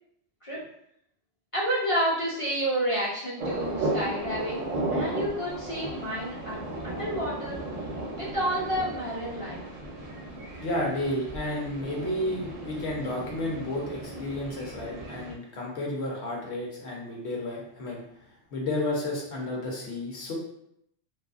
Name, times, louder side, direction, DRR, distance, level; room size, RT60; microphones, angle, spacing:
voice 1, 1.5-7.6 8.2-9.6, right 1 dB, 40° left, -7 dB, 0.5 m, -30 dB
sound 1, 3.4-15.3, right 1 dB, 60° right, 0.5 m, -35 dB
voice 2, 10.6-18.0 18.5-20.3, left 1 dB, 65° left, -2 dB, 1.0 m, -32 dB
2.5 x 2.5 x 2.4 m, 0.73 s
omnidirectional pair, 1.2 m